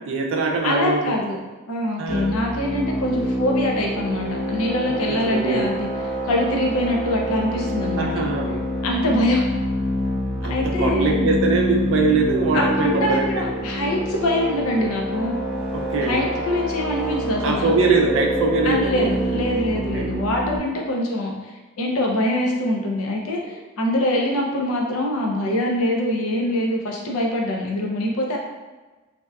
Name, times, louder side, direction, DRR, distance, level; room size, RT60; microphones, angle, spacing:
voice 1, 0.0-1.2 2.0-2.4 5.1-5.7 7.9-8.6 10.4-13.4 15.7-16.3 17.4-19.2 19.7-20.2 23.4-23.5, right 3 dB, 65° right, 1 dB, 0.4 m, -22 dB
voice 2, 0.6-1.4 1.7-5.9 6.3-8.1 8.8-9.4 10.4-11.2 12.5-15.3 16.0-17.7 18.6-21.3 21.8-28.4, left 1 dB, 75° left, 0 dB, 0.5 m, -24 dB
sound 1, 2.1-20.6, equal, ahead, 0.7 m, -26 dB
2.7 x 2.2 x 2.2 m, 1.2 s
head